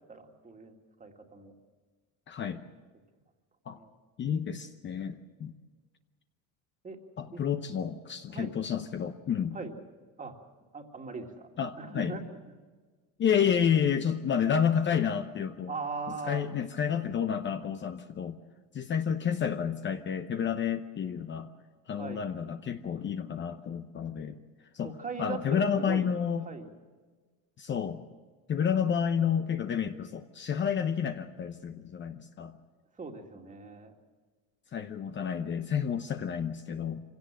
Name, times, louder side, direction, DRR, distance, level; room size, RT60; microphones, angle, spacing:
voice 1, 0.1-1.5 3.8-3.9 6.8-7.0 7.3-7.4 8.3-8.6 9.5-9.7 10.2-10.4 10.7-11.5 11.8-12.2 15.7-16.4 22.0-22.3 24.8-26.1 26.5-26.7 33.0-33.9, right 4 dB, 20° right, 4 dB, 2.2 m, -39 dB
voice 2, 2.3-2.6 3.7-3.8 4.2-5.5 7.2-9.5 11.6-12.2 13.2-15.7 16.3-18.4 18.7-21.5 21.9-24.4 24.7-24.9 25.2-26.5 27.6-28.0 28.5-32.6 34.7-37.0, left 7 dB, 30° left, 8 dB, 0.8 m, -30 dB
24.5 x 17.0 x 7.6 m, 1.4 s
cardioid pair, 130°, 35 cm